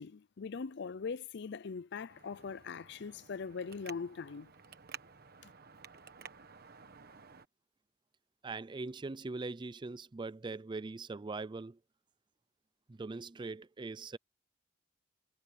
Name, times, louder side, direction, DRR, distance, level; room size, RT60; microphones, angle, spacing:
voice 1, 0.0-4.5 5.4-5.5, left 5 dB, 60° left, 0.5 m, -41 dB
Traffic noise roadway noise, 2.1-7.4, right 7 dB, 50° right, 1.3 m, -53 dB
voice 2, 8.4-11.8 12.9-14.2, right 3 dB, 25° right, 0.4 m, -41 dB
head